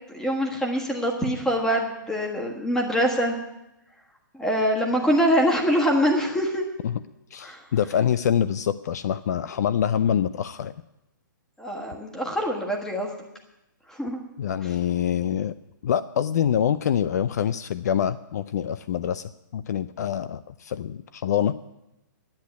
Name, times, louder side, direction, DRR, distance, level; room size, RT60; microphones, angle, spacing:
voice 1, 0.1-3.4 4.3-6.6 7.4-7.6 11.6-13.1 13.9-14.2, equal, 5° left, 1 dB, 1.5 m, -24 dB
voice 2, 7.3-10.7 14.4-15.5 15.8-21.7, left 9 dB, 55° left, 15 dB, 0.4 m, -25 dB
10.5 x 8.4 x 9.5 m, 0.92 s
hypercardioid pair, 160°, 11 cm